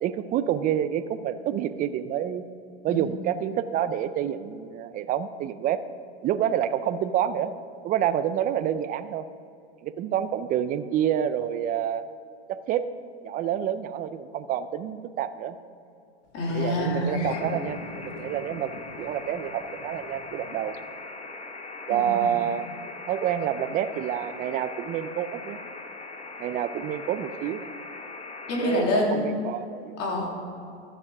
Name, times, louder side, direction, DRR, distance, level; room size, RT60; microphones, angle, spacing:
voice 1, 0.0-2.5 2.8-5.8 6.2-7.5 7.8-9.2 9.8-12.1 12.5-12.9 13.2-15.6 16.5-20.8 21.9-22.7 23.1-25.6 26.4-27.6 28.6-30.0, right 10 dB, 25° right, 12 dB, 0.4 m, -28 dB
voice 2, 16.3-17.3 21.9-22.4 28.5-29.4 30.0-30.3, left 1 dB, 45° left, -1 dB, 2.9 m, -27 dB
sound 1, 16.5-21.0, left 6 dB, 75° left, 1.0 m, -41 dB
sound 2, 17.3-28.8, left 3 dB, 20° left, 1.0 m, -40 dB
12.0 x 7.4 x 4.8 m, 2.6 s
hypercardioid pair, 110°, 34 cm